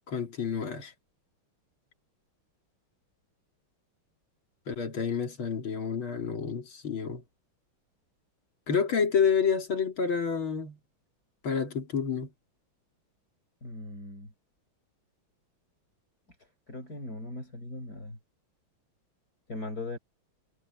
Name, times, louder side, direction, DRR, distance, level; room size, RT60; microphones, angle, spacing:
voice 1, 0.1-0.9 4.7-7.2 8.7-10.8 11.4-12.3, left 6 dB, 75° left, 3.7 m, -29 dB
voice 2, 13.6-14.3 16.7-18.2 19.5-20.0, left 2 dB, 45° left, 7.0 m, -39 dB
omnidirectional pair, 2.3 m